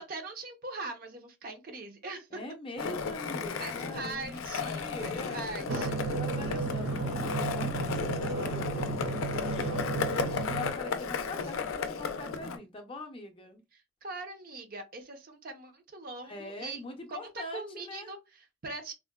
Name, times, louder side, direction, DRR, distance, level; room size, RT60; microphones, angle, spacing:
voice 1, 0.0-2.4 3.6-6.0 6.3-6.7 13.7-16.8 17.1-18.9, right 3 dB, 45° right, 0.5 m, -42 dB
voice 2, 2.3-5.5 6.2-9.0 9.4-13.6 16.2-18.1, left 2 dB, 25° left, 0.5 m, -43 dB
Skateboard, 2.8-12.6, left 5 dB, 80° left, 0.4 m, -34 dB
Drum, 5.7-10.7, right 4 dB, 85° right, 1.7 m, -33 dB
3.7 x 2.1 x 2.2 m
head